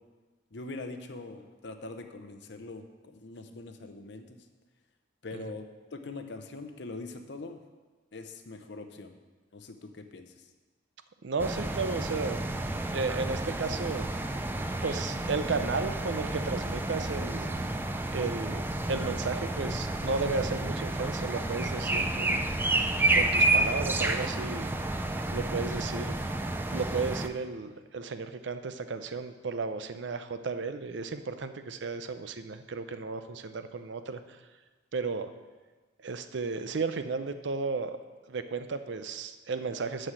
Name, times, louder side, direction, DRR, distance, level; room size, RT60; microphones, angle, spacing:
voice 1, 0.5-4.4 5.2-5.6 5.9-7.6 8.1-9.1 9.5-10.5, left 3 dB, 60° left, 7 dB, 0.8 m, -42 dB
voice 2, 11.2-12.4 12.9-14.0 14.8-17.5 18.1-22.4 23.1-24.7 25.3-26.2 26.7-34.2 34.9-35.3 36.0-38.0 38.3-40.1, right 4 dB, 65° right, 10 dB, 0.5 m, -34 dB
sound 1, 11.4-27.3, right 2 dB, 10° right, 0.4 m, -30 dB
6.4 x 6.3 x 7.4 m, 1.3 s
head